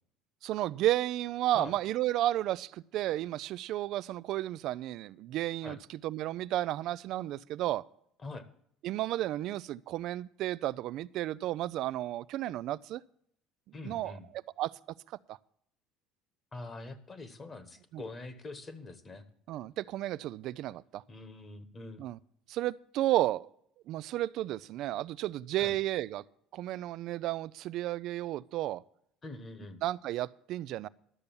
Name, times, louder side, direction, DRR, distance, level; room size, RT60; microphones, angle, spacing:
voice 1, 0.4-7.8 8.8-13.0 13.8-14.2 14.6-14.7 15.3-15.4 17.9-18.0 19.5-21.0 22.0-22.2 22.5-23.5 23.9-26.2 26.5-28.8 29.8-30.9, right 14 dB, 55° right, 0.4 m, -32 dB
voice 2, 13.7-14.3 16.5-19.2 21.1-22.0 25.6-25.8 29.2-29.8, left 3 dB, 25° left, 1.3 m, -44 dB
12.0 x 6.8 x 7.0 m
cardioid pair, 135°, 0 cm